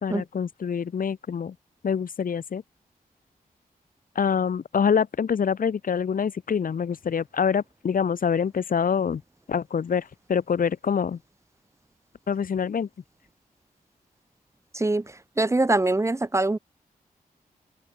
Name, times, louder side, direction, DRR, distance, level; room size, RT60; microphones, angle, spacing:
voice 1, 0.0-1.5 1.8-2.6 4.1-9.2 9.5-11.2 12.3-12.9, left 7 dB, 65° left, 1.7 m, -25 dB
voice 2, 14.7-16.6, right 2 dB, 20° right, 0.9 m, -24 dB
wide cardioid pair, 115°, 15 cm